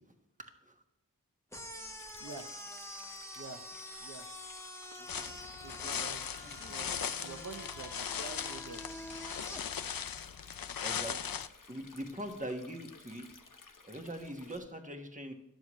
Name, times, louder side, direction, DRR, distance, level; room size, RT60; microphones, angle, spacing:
sound 1, 1.5-9.6, left 1 dB, 10° left, 1.0 m, -47 dB
Stream, 2.0-14.6, left 4 dB, 65° left, 0.9 m, -57 dB
voice 1, 5.0-5.4 5.8-6.0 6.4-7.4 10.8-11.4 11.7-13.3 13.8-15.3, right 1 dB, 20° right, 4 dB, 1.3 m, -43 dB
sound 2, 5.1-11.5, left 8 dB, 80° left, 0.5 m, -39 dB
voice 2, 5.6-6.2 6.5-8.8, right 4 dB, 55° right, 3 dB, 0.7 m, -47 dB
11.0 x 7.0 x 3.1 m, 0.87 s
wide cardioid pair, 50°, 34 cm